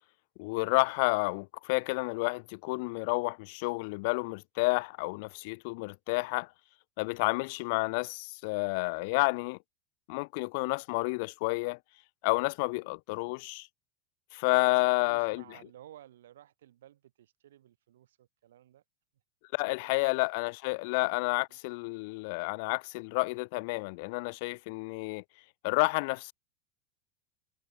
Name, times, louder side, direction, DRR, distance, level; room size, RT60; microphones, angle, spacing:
voice 1, 0.4-6.5 7.0-9.6 10.1-11.8 12.2-13.7 14.3-15.4 19.5-25.2 25.6-26.3, left 28 dB, 60° left, 0.3 m, -30 dB
voice 2, 14.7-18.8 19.8-20.1 21.5-21.6, right 12 dB, 75° right, 5.3 m, -55 dB
hypercardioid pair, 90°, 0 cm